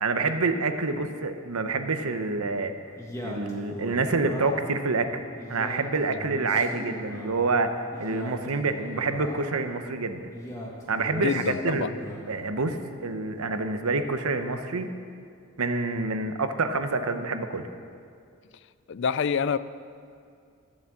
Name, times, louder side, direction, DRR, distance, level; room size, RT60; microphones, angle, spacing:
voice 1, 0.0-2.7 3.2-7.7 8.0-10.3 10.9-11.9 12.3-14.9 15.6-17.7, right 3 dB, 85° right, 0.9 m, -27 dB
Male speech man speaking, 3.0-4.8 5.4-7.3 7.9-9.6 10.3-12.3, left 1 dB, 15° left, 1.5 m, -38 dB
voice 2, 11.2-11.9 18.9-19.6, left 6 dB, 55° left, 0.4 m, -27 dB
13.5 x 7.4 x 7.5 m
head